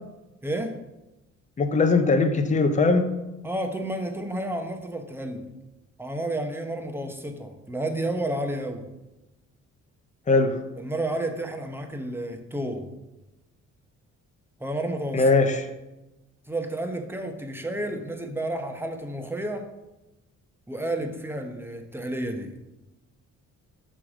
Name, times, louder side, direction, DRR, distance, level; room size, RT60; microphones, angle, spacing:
voice 1, 0.4-0.8 3.4-5.5 6.0-8.9 10.8-12.9 14.6-15.3 16.5-19.7 20.7-22.5, right 1 dB, 5° right, 5 dB, 0.9 m, -31 dB
voice 2, 1.6-3.1 10.3-10.6 15.1-15.7, left 3 dB, 25° left, 6 dB, 0.7 m, -20 dB
5.8 x 5.0 x 4.9 m, 0.98 s
cardioid pair, 90°, 30 cm